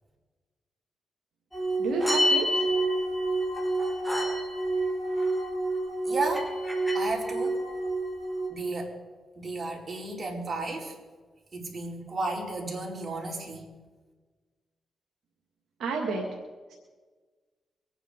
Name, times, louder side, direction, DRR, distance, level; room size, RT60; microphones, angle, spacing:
sound 1, 1.5-8.5, right 1 dB, 5° left, 5.1 m, -28 dB
voice 1, 1.8-2.6 15.8-16.2, right 4 dB, 80° right, 0 dB, 1.9 m, -30 dB
voice 2, 6.1-6.5 6.9-7.6 8.5-8.9 9.4-11.0 11.5-13.7, right 2 dB, 45° right, -1 dB, 4.4 m, -33 dB
24.0 x 9.1 x 5.1 m, 1.4 s
supercardioid pair, 55°, 0 cm